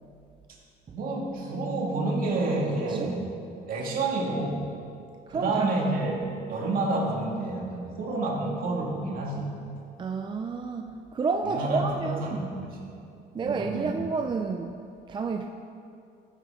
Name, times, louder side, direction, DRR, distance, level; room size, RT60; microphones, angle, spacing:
voice 1, 0.9-3.3 3.7-4.7 5.3-9.6 11.4-12.8 13.4-13.9, right 2 dB, 60° right, -2 dB, 2.4 m, -29 dB
voice 2, 5.3-5.7 10.0-12.4 13.3-14.8 15.1-15.5, right 4 dB, 30° right, 5 dB, 0.5 m, -30 dB
15.0 x 8.8 x 3.8 m, 2.5 s
cardioid pair, 110°, 17 cm